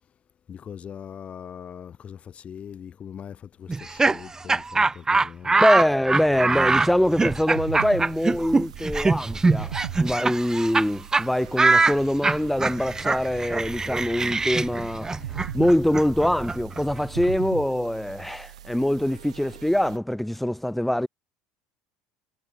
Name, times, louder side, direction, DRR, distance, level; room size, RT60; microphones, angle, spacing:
voice 1, 0.5-5.6, left 8 dB, 35° left, 4.2 m, -41 dB
Laughter, 3.7-10.9 11.1-11.2 11.6-17.3, right 3 dB, 15° right, 3.9 m, -23 dB
voice 2, 5.6-15.1 15.5-21.1, left 1 dB, 5° left, 4.5 m, -24 dB
sound 1, 6.3-20.0, right 11 dB, 75° right, 4.6 m, -40 dB
figure-of-eight pair, 65°, 3 cm